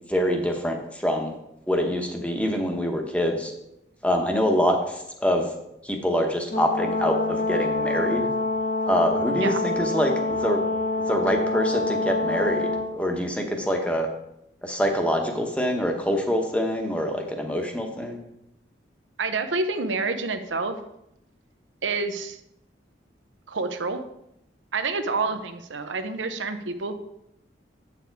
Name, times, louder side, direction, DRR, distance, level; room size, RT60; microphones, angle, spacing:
voice 1, 0.1-1.3 1.7-3.5 4.0-4.8 5.2-5.4 5.8-8.3 8.9-10.1 10.4-10.6 11.1-14.1 14.6-18.2, equal, 5° left, 3 dB, 0.9 m, -25 dB
Brass instrument, 6.5-12.9, left 2 dB, 40° left, 0.7 m, -26 dB
voice 2, 19.2-20.8 21.8-22.4 23.5-24.0 24.7-26.9, right 3 dB, 85° right, 8 dB, 0.8 m, -28 dB
8.3 x 6.8 x 4.6 m, 0.82 s
head